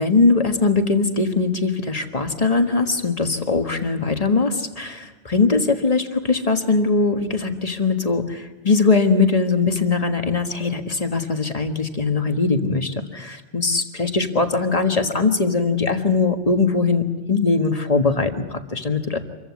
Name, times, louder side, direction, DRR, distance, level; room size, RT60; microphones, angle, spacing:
voice 1, 0.0-19.2, left 4 dB, 30° left, 6 dB, 1.6 m, -21 dB
26.0 x 15.0 x 9.6 m, 1.1 s
omnidirectional pair, 1.2 m